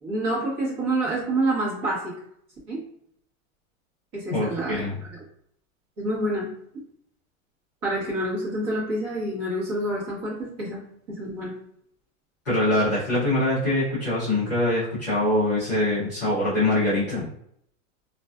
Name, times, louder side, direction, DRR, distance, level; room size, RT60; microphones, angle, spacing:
voice 1, 0.0-2.1 2.7-2.8 4.1-4.8 6.0-6.5 7.8-10.8 11.1-11.5, right 1 dB, 30° right, -6 dB, 1.1 m, -27 dB
voice 2, 4.3-5.0 12.4-17.3, left 1 dB, 15° left, -15 dB, 0.3 m, -23 dB
2.4 x 2.2 x 2.3 m, 0.70 s
supercardioid pair, 165°, 44 cm